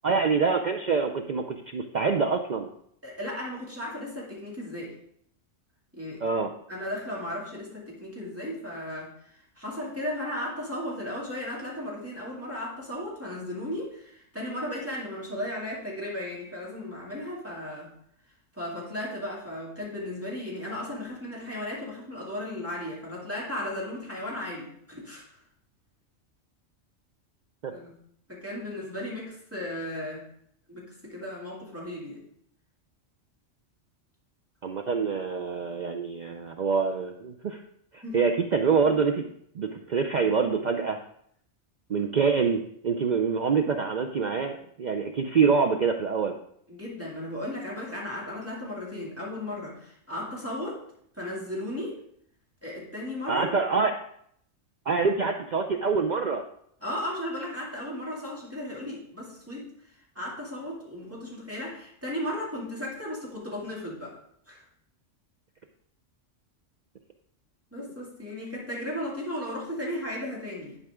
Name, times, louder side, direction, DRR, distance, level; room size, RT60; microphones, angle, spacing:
voice 1, 0.0-2.7 6.2-6.5 27.6-27.7 34.6-37.6 37.9-39.2 39.6-41.0 41.9-46.3 53.3-53.9 54.9-56.4, right 5 dB, 55° right, 3 dB, 0.5 m, -25 dB
voice 2, 3.0-5.0 5.9-6.2 6.7-17.9 18.5-25.2 27.7-28.0 28.3-30.3 30.7-32.2 38.0-38.2 46.7-50.8 51.1-52.0 52.6-53.5 56.8-59.7 60.1-64.2 64.5-64.6 67.7-70.8, left 1 dB, 10° right, -5 dB, 2.4 m, -35 dB
11.0 x 4.8 x 3.5 m, 0.68 s
omnidirectional pair, 1.3 m